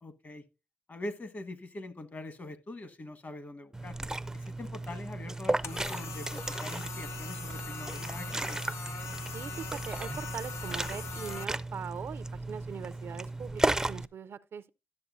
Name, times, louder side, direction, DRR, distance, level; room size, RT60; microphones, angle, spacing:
voice 1, 0.0-0.4 0.9-4.0 4.3-8.6, left 2 dB, 45° left, 1.2 m, -43 dB
Liquid, 3.7-14.1, right 2 dB, 10° right, 0.4 m, -35 dB
sound 1, 5.6-11.4, left 5 dB, 80° left, 0.6 m, -42 dB
voice 2, 9.3-14.7, right 7 dB, 70° right, 0.5 m, -41 dB
12.5 x 6.9 x 2.5 m
supercardioid pair, 55°, 4 cm